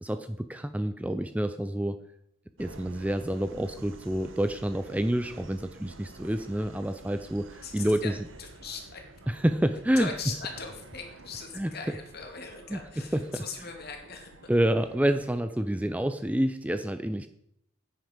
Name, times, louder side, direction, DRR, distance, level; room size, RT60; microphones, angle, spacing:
voice 1, 0.0-2.0 2.6-8.1 9.3-10.1 11.5-11.7 12.7-13.4 14.5-17.3, right 1 dB, 5° right, 10 dB, 0.4 m, -28 dB
Subway metro underground, 2.6-15.4, right 2 dB, 75° right, 1.0 m, -50 dB
voice 2, 7.6-9.1 10.0-14.5, left 5 dB, 50° left, 3 dB, 2.3 m, -40 dB
9.8 x 9.5 x 5.1 m, 0.73 s
head